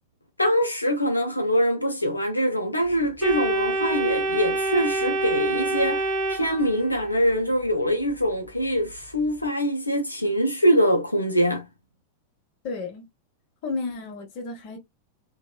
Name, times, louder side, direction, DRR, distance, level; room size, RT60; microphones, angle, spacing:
voice 1, 0.4-11.7, equal, 85° left, 0.4 m, -23 dB
Organ, 3.2-7.1, right 2 dB, 5° left, 1.2 m, -26 dB
voice 2, 12.6-13.1 13.6-14.8, left 3 dB, 45° left, 0.9 m, -32 dB
2.9 x 2.1 x 2.2 m
figure-of-eight pair, 90°, 0 cm